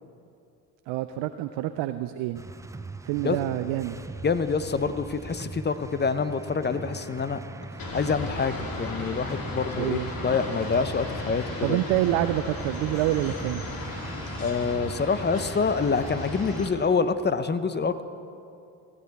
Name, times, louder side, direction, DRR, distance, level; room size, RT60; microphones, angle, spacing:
voice 1, 0.9-2.4 3.0-4.0 9.7-10.1 11.6-13.6, right 14 dB, 65° right, 11 dB, 0.6 m, -27 dB
sound 1, 2.3-16.7, right 3 dB, 5° right, 0.3 m, -41 dB
voice 2, 4.2-7.4 7.9-11.8 14.4-18.0, left 5 dB, 20° left, 12 dB, 0.7 m, -26 dB
sound 2, 7.8-16.7, left 2 dB, 45° left, 2.4 m, -36 dB
17.0 x 9.5 x 4.2 m, 2.6 s
hypercardioid pair, 55°, 48 cm